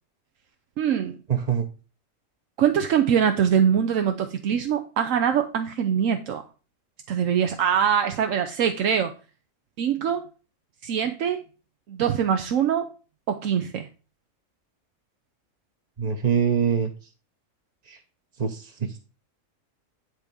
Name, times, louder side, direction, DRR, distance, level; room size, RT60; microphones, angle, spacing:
voice 1, 0.8-1.2 2.6-6.4 7.1-9.1 9.8-10.2 10.8-11.4 11.9-12.9 13.3-13.9, right 8 dB, 80° right, 1.1 m, -23 dB
voice 2, 1.3-1.6 16.0-16.9 17.9-18.0 18.4-19.0, right 7 dB, 35° right, 0.8 m, -24 dB
10.5 x 3.6 x 6.8 m
omnidirectional pair, 1.3 m